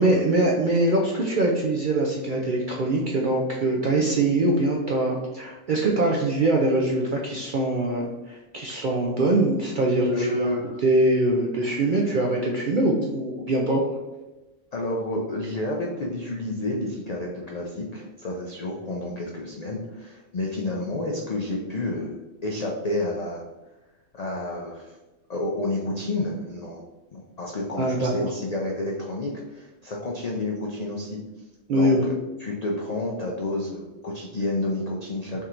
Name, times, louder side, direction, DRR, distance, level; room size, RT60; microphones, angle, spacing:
voice 1, 0.0-10.5 10.8-13.8 27.8-28.3 31.7-32.1, right 2 dB, 65° right, -1 dB, 0.4 m, -23 dB
voice 2, 10.0-10.8 14.7-22.1 22.4-23.4 24.1-25.0 25.3-26.8 27.1-31.2 31.7-35.4, left 2 dB, 80° left, -1 dB, 0.3 m, -30 dB
3.6 x 2.5 x 4.3 m, 1.1 s
omnidirectional pair, 1.4 m